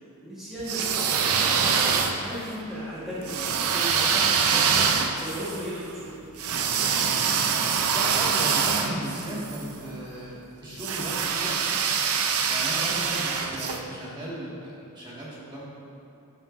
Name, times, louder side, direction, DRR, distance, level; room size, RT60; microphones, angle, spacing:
voice 1, 0.0-1.6 2.1-4.8 5.2-6.2, equal, ahead, -12 dB, 1.4 m, -36 dB
sound 1, 0.6-2.5 3.3-9.6 10.8-13.8, right 6 dB, 70° right, 0.6 m, -25 dB
voice 2, 7.9-11.6 12.5-15.6, right 1 dB, 20° right, -8 dB, 1.9 m, -36 dB
13.5 x 6.0 x 2.6 m, 2.7 s
head